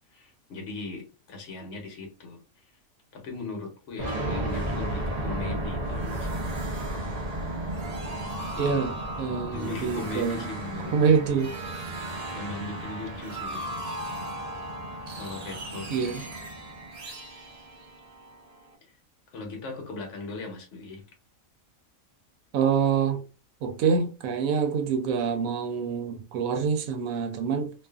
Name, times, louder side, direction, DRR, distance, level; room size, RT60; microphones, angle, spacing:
voice 1, 0.1-2.4 3.1-6.4 8.1-8.2 9.4-11.2 12.3-13.6 15.2-16.3 18.8-18.9 19.3-21.1, left 3 dB, 60° left, 1.1 m, -39 dB
sound 1, 4.0-18.7, right 1 dB, 50° right, 0.4 m, -34 dB
voice 2, 8.6-10.4 10.9-11.5 15.9-16.2 22.5-23.2 23.6-27.7, right 6 dB, 85° right, 1.0 m, -26 dB
2.5 x 2.4 x 2.3 m
omnidirectional pair, 1.4 m